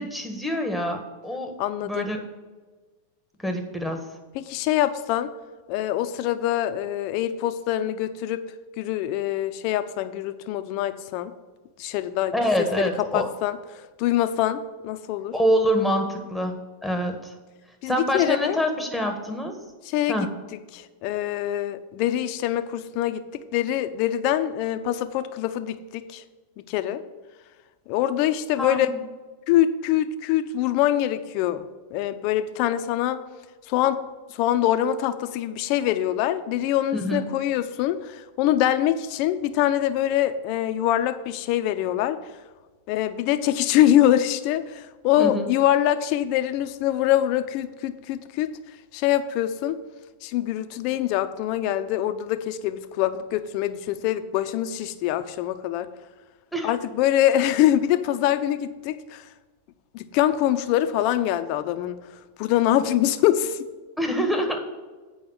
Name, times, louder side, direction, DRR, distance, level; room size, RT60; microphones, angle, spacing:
voice 1, 0.0-1.5 1.8-2.2 3.4-4.0 12.3-13.3 15.3-16.6 16.8-17.3 17.8-19.6 20.1-20.3 28.6-29.0 36.9-37.3 45.2-45.5 56.5-56.7 64.0-64.6, equal, ahead, 4 dB, 1.7 m, -25 dB
voice 2, 1.6-2.1 4.3-5.3 5.7-8.4 8.8-11.3 11.8-12.3 12.6-13.6 14.0-15.4 17.8-18.6 19.8-20.2 20.5-26.2 26.6-27.0 27.9-28.9 29.5-31.6 31.9-33.2 33.7-34.0 34.3-42.2 42.9-48.5 48.9-49.8 50.2-55.9 56.6-59.3 59.9-62.0 62.4-63.6, left 12 dB, 55° left, 11 dB, 0.7 m, -24 dB
8.8 x 5.4 x 6.5 m, 1.3 s
hypercardioid pair, 110°, 0 cm